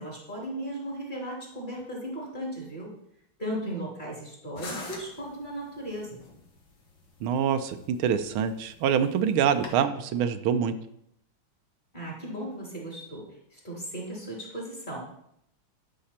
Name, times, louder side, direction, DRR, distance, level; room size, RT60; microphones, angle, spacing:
voice 1, 0.0-2.9 3.4-6.2 11.9-13.2 13.5-15.0, right 1 dB, 20° left, -3 dB, 2.9 m, -36 dB
sound 1, 4.6-9.8, left 3 dB, 65° left, 2.2 m, -45 dB
voice 2, 7.2-10.7, right 8 dB, 90° right, 9 dB, 1.6 m, -25 dB
11.5 x 5.8 x 4.3 m, 0.75 s
omnidirectional pair, 2.2 m